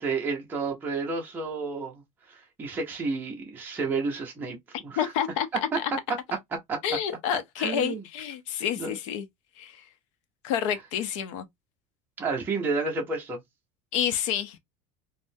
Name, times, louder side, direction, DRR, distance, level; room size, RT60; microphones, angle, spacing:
voice 1, 0.0-4.6 4.8-5.1 5.7-5.8 6.7-6.8 7.6-8.0 8.8-8.9 12.2-13.4, right 4 dB, 10° right, 0.5 m, -31 dB
voice 2, 5.0-5.5 5.8-5.9 6.8-9.3 9.6-9.8 10.4-11.5 13.9-14.6, left 9 dB, 85° left, 0.6 m, -29 dB
3.4 x 2.1 x 2.6 m
cardioid pair, 170°, 16 cm